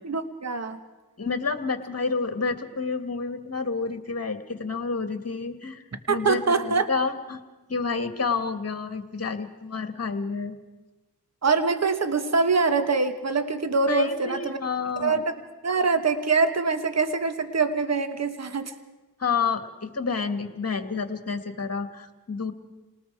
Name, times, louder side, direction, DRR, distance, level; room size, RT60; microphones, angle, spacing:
voice 1, 0.0-0.8 6.1-6.9 11.4-14.6 15.0-15.2 15.6-18.7, right 4 dB, 40° right, 9 dB, 1.4 m, -24 dB
voice 2, 1.2-7.4 7.7-10.6 13.9-15.2 19.2-22.5, left 4 dB, 40° left, 8 dB, 2.0 m, -29 dB
28.5 x 19.0 x 4.8 m, 1.1 s
cardioid pair, 65°, 38 cm